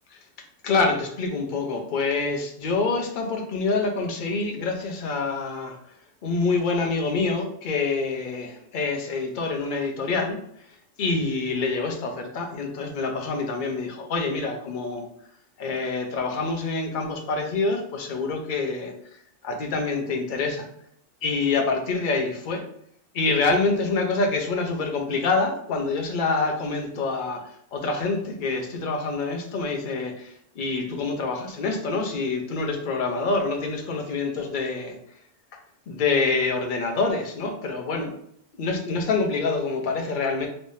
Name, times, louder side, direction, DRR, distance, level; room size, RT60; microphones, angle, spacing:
voice 1, 0.6-5.8 6.2-10.4 11.0-15.1 15.6-20.7 21.2-22.6 23.1-35.0 35.9-38.2 38.5-40.5, left 3 dB, 50° left, 3 dB, 0.7 m, -26 dB
3.2 x 3.2 x 2.7 m, 0.70 s
omnidirectional pair, 1.3 m